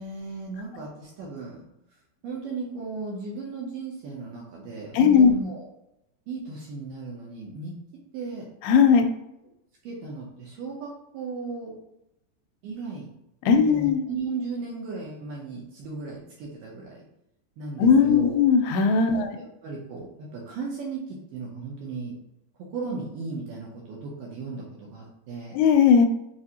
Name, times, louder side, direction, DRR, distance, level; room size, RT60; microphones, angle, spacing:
voice 1, 0.0-1.6 2.2-5.7 6.3-7.7 8.1-8.5 9.8-11.8 12.6-13.1 13.5-17.0 17.6-18.4 19.1-22.1 22.7-25.6, right 4 dB, 80° right, -3 dB, 2.1 m, -36 dB
voice 2, 4.9-5.3 8.6-9.1 13.5-14.0 17.8-19.4 25.5-26.1, left 6 dB, 85° left, 6 dB, 2.5 m, -18 dB
6.1 x 2.5 x 2.8 m, 0.84 s
omnidirectional pair, 4.5 m